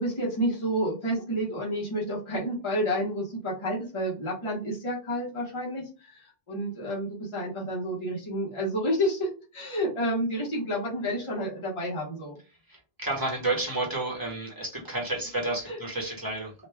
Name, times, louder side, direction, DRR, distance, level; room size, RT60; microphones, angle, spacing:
voice 1, 0.0-12.4 15.7-15.8, equal, 30° left, -5 dB, 1.0 m, -30 dB
voice 2, 12.7-16.5, right 2 dB, 20° right, -2 dB, 1.0 m, -31 dB
3.0 x 2.2 x 3.4 m, 0.34 s
omnidirectional pair, 1.0 m